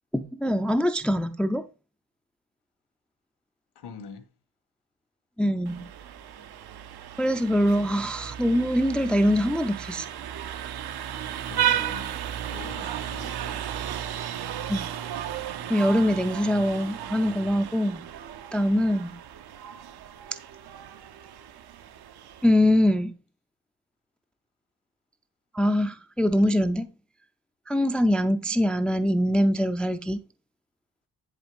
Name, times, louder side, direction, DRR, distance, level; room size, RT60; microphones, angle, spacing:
voice 1, 0.1-1.6 5.4-5.8 7.2-10.1 14.7-14.9 15.7-18.0 18.5-19.1 22.4-23.1 25.5-26.9 27.7-30.2, equal, 5° left, 0.4 m, -23 dB
voice 2, 3.8-4.3 11.4-12.1 12.5-13.6, left 6 dB, 85° left, 2.0 m, -43 dB
Vehicle horn car horn honking, 5.7-22.5, right 10 dB, 75° right, 0.9 m, -34 dB
10.5 x 4.0 x 5.2 m
wide cardioid pair, 175°, 39 cm